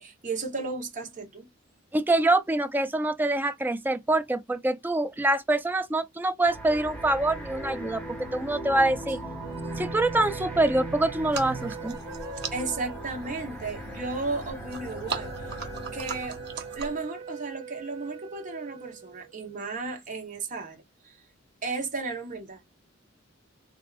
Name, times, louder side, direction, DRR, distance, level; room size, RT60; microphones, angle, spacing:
voice 1, 0.0-1.5 12.5-15.6 15.9-16.4 16.7-21.2 21.6-22.6, right 3 dB, 40° right, 1.1 m, -34 dB
voice 2, 1.9-8.0 8.3-9.2 9.8-12.0, right 2 dB, 10° right, 0.3 m, -25 dB
sound 1, 6.4-17.0, right 1 dB, 10° left, 1.5 m, -38 dB
sound 2, 9.2-19.6, right 6 dB, 80° right, 1.0 m, -43 dB
sound 3, 11.1-17.1, right 6 dB, 60° right, 0.6 m, -40 dB
3.4 x 2.6 x 2.4 m
head